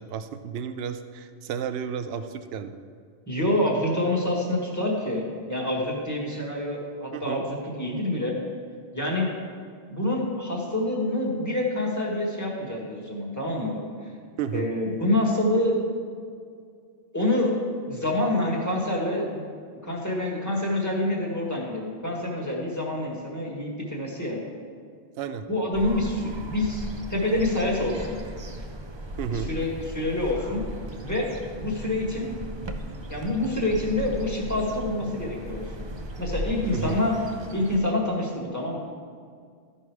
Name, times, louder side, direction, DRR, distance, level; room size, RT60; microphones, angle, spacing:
voice 1, 0.0-2.8 7.1-7.4 14.4-14.7 25.2-25.5 29.2-29.5 36.7-37.0, right 7 dB, 75° right, 10 dB, 0.8 m, -32 dB
voice 2, 3.3-8.3 8.9-9.3 9.9-13.8 14.5-15.8 17.1-17.5 17.9-19.4 19.8-24.4 25.5-28.2 29.3-30.6 31.0-31.3 31.6-32.3 33.1-35.8 36.2-37.1 37.5-38.8, left 1 dB, 15° left, -3 dB, 1.6 m, -27 dB
sound 1, 25.7-37.8, right 1 dB, 35° right, 0.6 m, -37 dB
13.0 x 5.5 x 4.7 m, 2.2 s
omnidirectional pair, 1.0 m